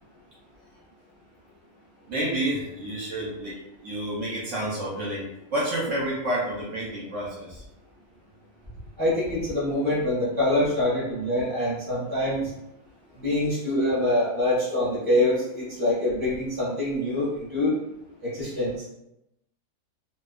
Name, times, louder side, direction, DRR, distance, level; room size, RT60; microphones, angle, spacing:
voice 1, 2.1-3.6 3.8-5.2 5.5-7.6, right 1 dB, 65° right, -5 dB, 0.8 m, -29 dB
voice 2, 9.0-12.5 13.2-17.8 18.2-18.8, left 1 dB, 10° left, -8 dB, 0.6 m, -25 dB
2.5 x 2.2 x 2.3 m, 0.85 s
omnidirectional pair, 1.6 m